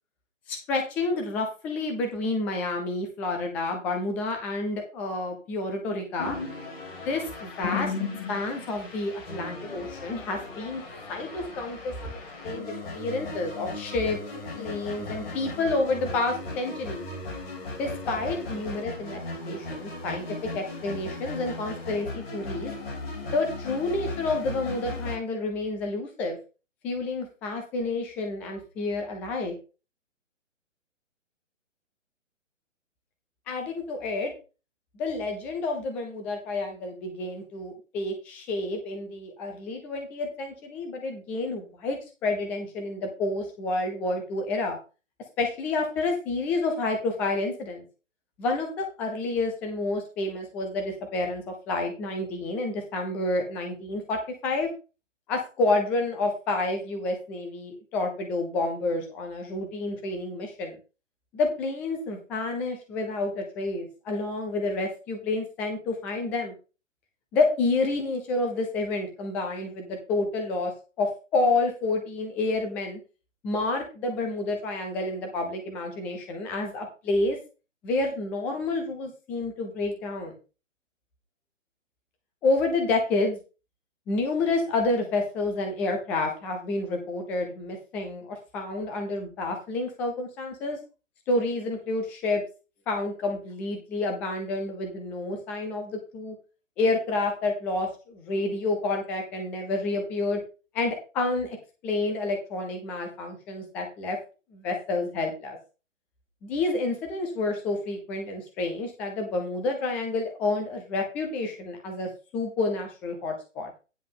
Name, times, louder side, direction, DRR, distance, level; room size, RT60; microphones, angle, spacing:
voice 1, 0.5-6.4 6.9-7.9 8.3-10.8 11.1-14.2 14.6-17.0 17.8-19.2 19.5-20.3 20.5-22.7 23.2-26.4 26.8-29.5 33.5-34.3 35.0-44.8 45.4-47.8 48.4-54.7 55.3-60.8 61.3-66.5 67.3-70.7 71.0-73.0 73.4-77.4 77.8-80.4 82.4-83.4 84.1-90.8 91.3-92.4 92.9-96.4 96.8-100.4 100.7-101.6 101.8-104.2 104.5-105.6 106.4-113.7, left 2 dB, 5° left, 4 dB, 0.5 m, -29 dB
sound 1, 6.2-25.2, left 3 dB, 50° left, 3.2 m, -37 dB
9.8 x 5.2 x 5.3 m, 0.32 s
figure-of-eight pair, 135°, 38 cm